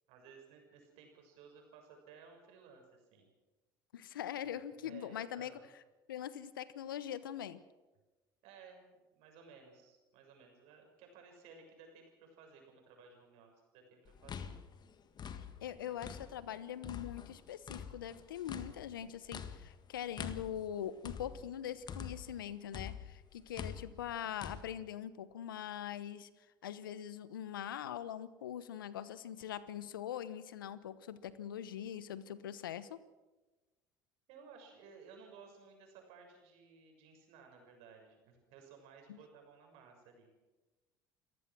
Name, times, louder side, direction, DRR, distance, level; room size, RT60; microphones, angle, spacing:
voice 1, 0.1-3.3 4.8-5.6 8.4-14.6 15.6-16.0 34.3-40.3, right 5 dB, 65° right, 2 dB, 6.6 m, -58 dB
voice 2, 3.9-5.5 6.1-7.6 15.6-26.3 26.6-33.0 39.1-39.2, left 10 dB, 85° left, 16 dB, 1.0 m, -42 dB
sound 1, 14.1-16.5 16.8-22.4 22.7-24.6, left 7 dB, 40° left, 1.7 m, -46 dB
28.5 x 15.0 x 6.2 m, 1.2 s
hypercardioid pair, 70°, 11 cm